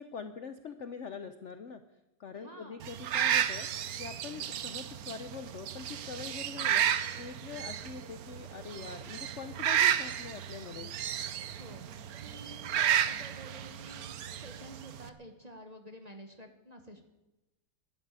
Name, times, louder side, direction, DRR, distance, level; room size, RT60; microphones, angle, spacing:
voice 1, 0.0-1.8 2.2-3.7 4.0-6.9 7.2-10.9, left 6 dB, 55° left, 9 dB, 0.8 m, -43 dB
voice 2, 2.3-2.8 11.6-11.8 12.1-17.0, right 1 dB, 25° right, 5 dB, 1.2 m, -50 dB
sound 1, 2.8-15.1, right 9 dB, 60° right, 1.1 m, -32 dB
11.5 x 11.5 x 9.6 m, 1.0 s
omnidirectional pair, 2.0 m